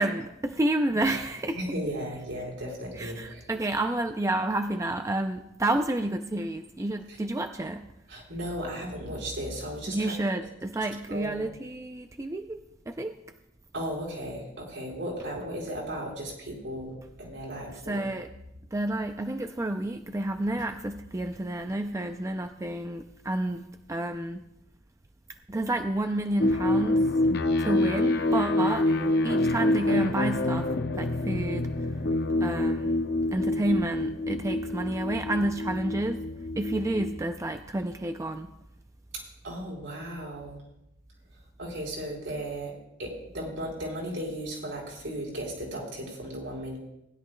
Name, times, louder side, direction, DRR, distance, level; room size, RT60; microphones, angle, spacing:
voice 1, 0.0-1.6 3.0-7.9 9.9-12.6 12.9-13.1 17.9-18.3 18.7-24.4 25.5-27.0 27.6-28.9 29.2-30.7 31.0-31.7 32.4-33.0 33.3-36.2 36.5-38.5, right 1 dB, 15° right, 7 dB, 0.4 m, -30 dB
voice 2, 1.5-3.5 7.1-7.2 8.1-10.2 11.1-11.4 13.7-18.1 28.9-29.1 39.1-40.6 41.6-42.7 43.0-46.8, right 1 dB, 75° right, -3 dB, 4.1 m, -36 dB
sound 1, 26.4-37.3, left 2 dB, 55° left, 0.7 m, -27 dB
19.5 x 11.0 x 2.2 m, 0.84 s
head